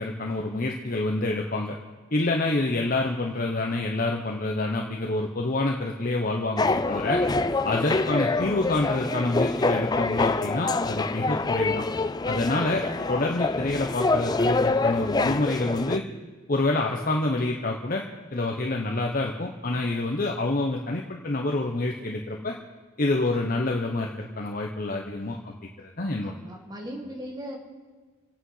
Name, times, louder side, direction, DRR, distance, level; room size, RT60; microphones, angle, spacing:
voice 1, 0.0-1.7 2.1-7.2 7.6-11.8 12.3-16.0 16.5-18.0 18.3-22.6 23.0-25.5 25.8-26.3, left 2 dB, 45° left, 1 dB, 1.0 m, -27 dB
sound 1, 6.6-16.0, left 3 dB, 20° left, 0.4 m, -26 dB
voice 2, 26.2-27.6, equal, 20° right, 1 dB, 2.1 m, -38 dB
26.5 x 8.9 x 5.7 m, 1.4 s
head